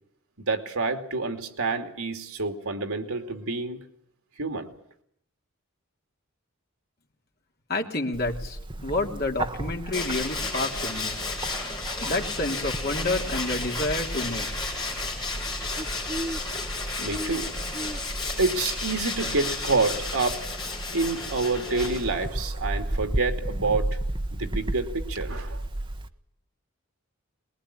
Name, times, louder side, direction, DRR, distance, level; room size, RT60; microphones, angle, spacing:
voice 1, 0.4-3.8 4.4-4.7 17.0-17.5 18.4-20.4 20.9-24.0 24.3-25.6, right 3 dB, 80° right, 6 dB, 2.6 m, -28 dB
voice 2, 7.7-11.2 12.0-14.5, left 2 dB, 45° left, 2 dB, 2.8 m, -29 dB
Bird, 8.1-26.1, right 1 dB, 20° right, 0.9 m, -34 dB
Tools, 9.9-22.4, left 3 dB, 20° left, 7.0 m, -33 dB
22.5 x 21.5 x 10.0 m, 0.70 s
head